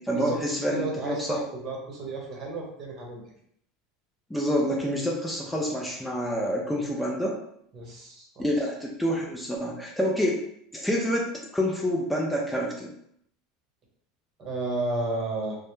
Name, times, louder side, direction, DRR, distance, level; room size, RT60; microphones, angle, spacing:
voice 1, 0.0-1.4 4.3-7.4 8.4-10.4 10.7-12.9, equal, 5° left, -2 dB, 0.4 m, -27 dB
voice 2, 0.7-3.2 7.7-8.5 14.4-15.6, right 2 dB, 45° right, -1 dB, 0.9 m, -32 dB
2.1 x 2.0 x 3.0 m, 0.71 s
hypercardioid pair, 100°, 0 cm